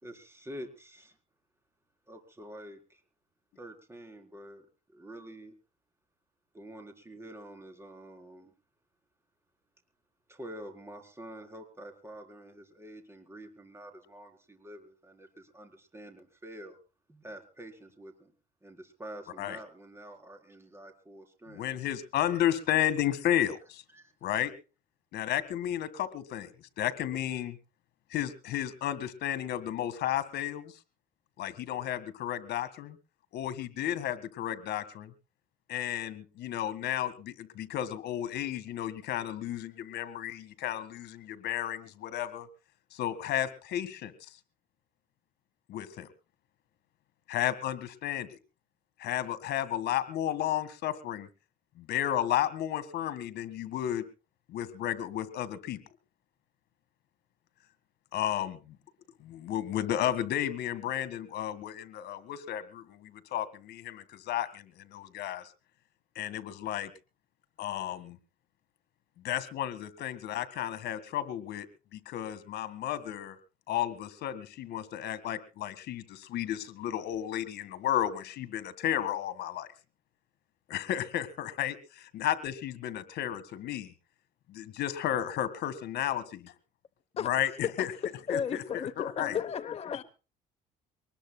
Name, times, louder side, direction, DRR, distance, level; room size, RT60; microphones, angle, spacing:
voice 1, 0.0-1.2 2.1-3.0 3.6-5.5 6.5-8.5 10.3-16.8 17.1-18.3 18.6-21.6 23.9-24.1, right 1 dB, 15° right, 4.4 m, -47 dB
voice 2, 21.5-23.8 24.2-24.5 25.1-26.5 26.8-27.6 28.1-30.8 31.4-33.0 33.3-35.1 35.7-42.5 42.9-44.1 45.7-46.1 47.3-48.4 49.0-51.3 51.8-54.0 54.5-55.8 58.1-58.8 59.2-65.5 66.2-66.9 67.6-68.2 69.2-71.7 71.9-73.4 73.7-79.7 80.7-83.9 84.5-86.5 87.2-87.9 88.3-89.4, left 11 dB, 70° left, 1.9 m, -33 dB
voice 3, 88.3-90.0, left 7 dB, 35° left, 1.0 m, -33 dB
24.0 x 20.0 x 2.3 m
cardioid pair, 110°, 17 cm